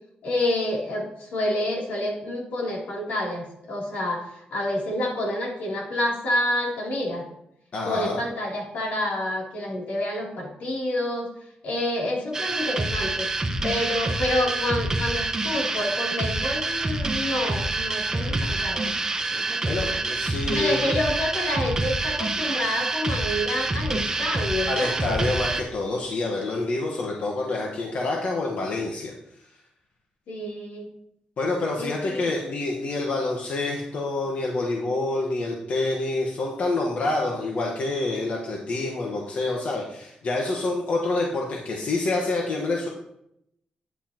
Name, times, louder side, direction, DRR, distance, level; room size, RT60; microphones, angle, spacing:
voice 1, 0.2-7.3 7.8-13.3 13.6-19.0 19.3-20.0 20.5-25.0 30.3-30.9 31.8-32.3, left 1 dB, 90° left, -4 dB, 3.2 m, -28 dB
voice 2, 7.7-8.2 19.7-20.9 24.7-29.1 31.4-42.9, left 2 dB, 60° left, -1 dB, 1.3 m, -27 dB
sound 1, 12.3-25.6, right 2 dB, 20° right, 1.0 m, -27 dB
9.7 x 8.4 x 3.0 m, 0.77 s
cardioid pair, 105°, 3 cm